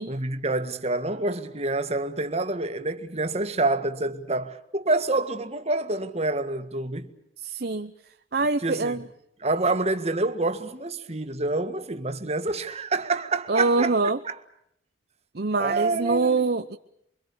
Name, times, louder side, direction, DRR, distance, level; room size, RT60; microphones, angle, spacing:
voice 1, 0.1-7.1 8.6-9.0 9.4-14.0 14.2-14.4 15.6-16.4, right 2 dB, 35° right, 1.9 m, -27 dB
voice 2, 7.4-7.9 8.3-9.0 13.5-14.2 15.3-16.8, right 3 dB, 60° right, 0.9 m, -24 dB
28.5 x 24.0 x 7.0 m
head